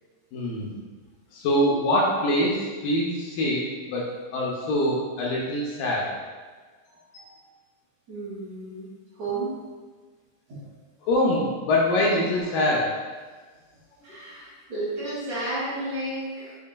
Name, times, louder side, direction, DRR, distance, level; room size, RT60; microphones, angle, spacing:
voice 1, 0.3-0.8 1.3-6.2 7.1-7.3 11.0-12.9, left 1 dB, 75° left, -4 dB, 2.1 m, -24 dB
voice 2, 8.1-8.9 9.1-9.6 10.5-10.6 14.0-16.6, right 2 dB, 55° right, -10 dB, 2.2 m, -32 dB
6.3 x 3.8 x 2.2 m, 1.4 s
omnidirectional pair, 4.3 m